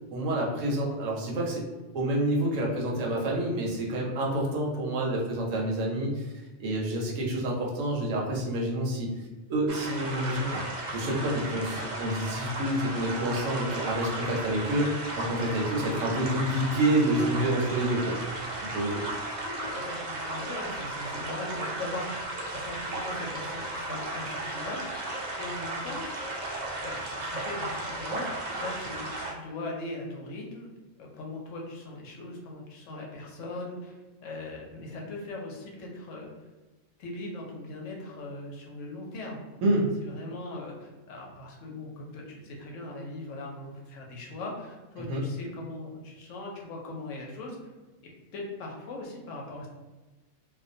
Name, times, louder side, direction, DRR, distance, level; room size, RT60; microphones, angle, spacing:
voice 1, 0.1-1.6 1.9-6.3 6.6-9.2 9.5-10.6 10.9-18.2 18.7-19.0 39.6-39.9 45.1-45.2, right 1 dB, 70° right, -2 dB, 0.9 m, -28 dB
sound 1, 9.7-29.3, right 2 dB, 85° right, 0.4 m, -35 dB
voice 2, 19.4-25.0 25.4-26.1 26.8-30.7 31.0-36.3 37.0-39.5 39.7-47.6 48.3-49.7, left 2 dB, 70° left, -1 dB, 0.9 m, -40 dB
2.4 x 2.1 x 2.5 m, 1.2 s
omnidirectional pair, 1.4 m